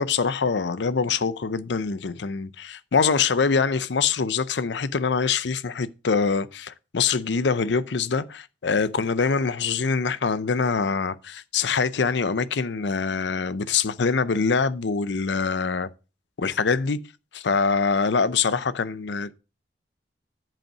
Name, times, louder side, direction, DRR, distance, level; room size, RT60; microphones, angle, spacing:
voice 1, 0.0-15.9 16.4-17.0 17.3-19.3, left 5 dB, 80° left, 0.6 m, -24 dB
7.3 x 5.4 x 6.0 m
head